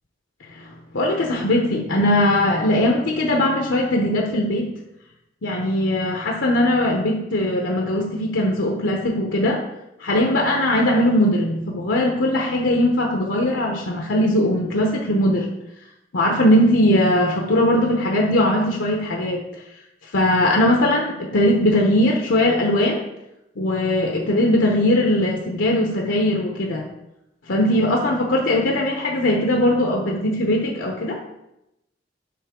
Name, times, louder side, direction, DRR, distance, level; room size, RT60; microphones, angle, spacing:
voice 1, 0.6-4.7 5.4-9.6 10.0-15.5 16.1-19.4 20.1-23.0 23.6-26.8 27.5-31.2, left 1 dB, 85° left, 0 dB, 0.8 m, -20 dB
9.5 x 3.2 x 3.6 m, 0.88 s
head